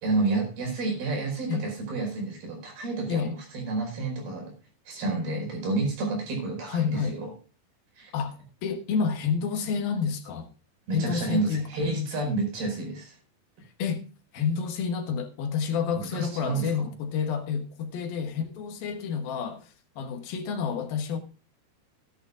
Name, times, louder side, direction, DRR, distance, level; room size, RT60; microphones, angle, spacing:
voice 1, 0.0-4.5 4.9-7.3 8.0-8.1 10.9-13.2 15.9-16.9, right 2 dB, 75° right, 6.8 m, -30 dB
voice 2, 6.7-7.2 8.1-10.5 10.9-11.9 13.6-14.0 14.3-21.2, left 6 dB, 70° left, 3.0 m, -29 dB
17.0 x 11.0 x 2.3 m
omnidirectional pair, 4.5 m